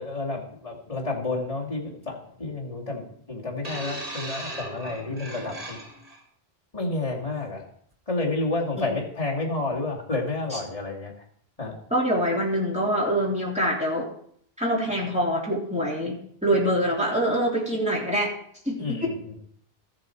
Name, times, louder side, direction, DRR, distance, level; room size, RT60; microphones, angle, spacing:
voice 1, 0.0-5.9 6.7-7.6 8.1-11.1 11.6-11.8 18.8-19.3, left 2 dB, 35° left, -3 dB, 2.4 m, -30 dB
sound 1, 3.6-6.2 7.1-7.3, right 1 dB, 35° right, 1.8 m, -37 dB
voice 2, 11.9-14.1 14.6-16.1 16.4-18.3 18.6-19.1, equal, 5° right, -4 dB, 3.1 m, -25 dB
13.5 x 7.6 x 4.5 m, 0.64 s
omnidirectional pair, 1.1 m